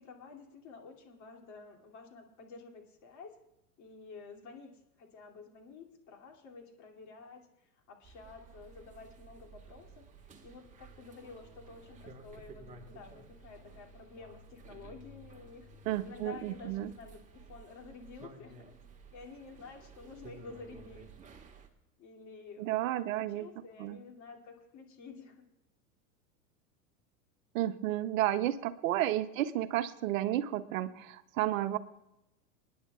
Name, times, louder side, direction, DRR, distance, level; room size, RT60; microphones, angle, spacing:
voice 1, 0.0-3.4 3.8-10.1 10.4-15.7 16.0-18.7 19.1-21.1 22.0-25.4 29.3-29.5, left 4 dB, 35° left, 2 dB, 2.8 m, -51 dB
sound 1, 8.0-21.7, right 4 dB, 15° right, 1.6 m, -54 dB
voice 2, 15.9-16.9 22.6-23.5 23.8-24.0 27.5-31.8, right 13 dB, 55° right, 12 dB, 0.9 m, -32 dB
27.5 x 10.5 x 2.4 m, 0.89 s
hypercardioid pair, 100°, 47 cm